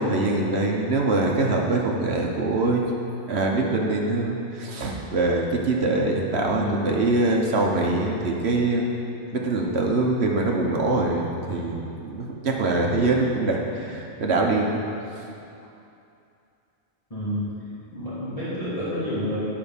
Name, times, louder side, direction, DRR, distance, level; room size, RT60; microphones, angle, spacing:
voice 1, 0.0-2.8 3.3-8.9 9.3-14.8, right 2 dB, 65° right, 0 dB, 1.2 m, -23 dB
voice 2, 6.6-6.9 17.1-17.5 17.9-19.4, equal, 30° left, -12 dB, 2.6 m, -29 dB
10.5 x 5.0 x 7.1 m, 2.6 s
omnidirectional pair, 1.2 m